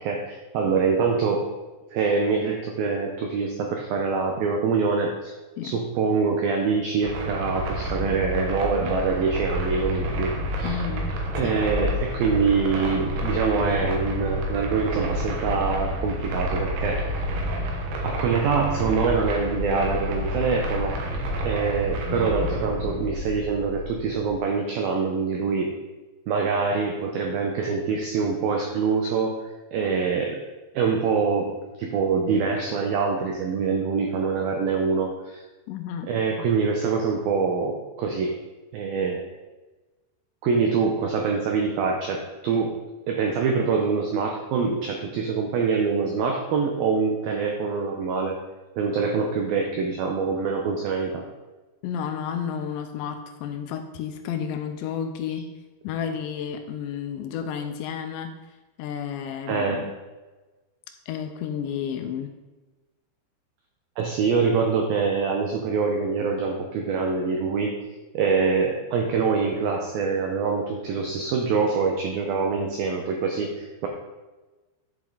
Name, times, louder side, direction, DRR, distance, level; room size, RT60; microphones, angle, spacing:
voice 1, 0.0-1.5 1.9-5.3 5.6-10.8 11.4-17.2 18.0-21.0 21.4-25.8 26.3-29.4 29.7-30.4 30.7-35.4 36.1-38.4 38.7-39.3 40.4-42.8 43.1-48.4 48.8-51.3 59.5-59.9 64.0-67.8 68.1-73.9, right 5 dB, 90° right, 2 dB, 2.0 m, -25 dB
sound 1, 7.0-24.3, equal, 65° right, 3.0 m, -29 dB
voice 2, 10.6-11.1 11.4-11.6 22.1-22.5 35.7-36.1 36.4-36.5 51.8-55.5 55.8-58.3 58.8-59.9 61.1-62.3, left 8 dB, 80° left, 6 dB, 2.7 m, -31 dB
11.0 x 7.4 x 3.9 m, 1.2 s
omnidirectional pair, 5.4 m